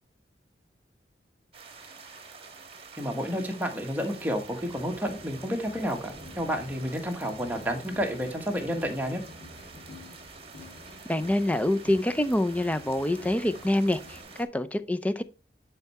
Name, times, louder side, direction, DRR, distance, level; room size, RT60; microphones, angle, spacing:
sound 1, 1.5-14.4, right 3 dB, 30° right, 1.4 m, -47 dB
voice 1, 3.0-9.2, equal, 10° right, 1.3 m, -30 dB
sound 2, 5.6-14.2, left 2 dB, 65° left, 2.3 m, -50 dB
voice 2, 11.1-15.2, left 1 dB, 10° left, 0.5 m, -26 dB
10.5 x 4.7 x 4.2 m
head